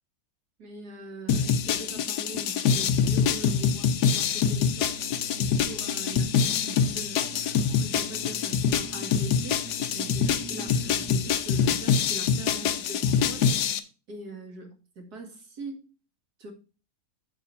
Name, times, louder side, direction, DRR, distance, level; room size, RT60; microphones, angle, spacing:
voice 1, 0.6-4.9 5.4-9.6 9.9-13.5 14.1-14.7 15.0-15.9 16.4-16.5, right 2 dB, 55° right, 2.6 m, -42 dB
sound 1, 1.3-13.8, left 7 dB, 70° left, 1.3 m, -25 dB
sound 2, 3.8-11.2, right 3 dB, 85° right, 3.3 m, -44 dB
8.7 x 6.7 x 4.2 m
omnidirectional pair, 2.0 m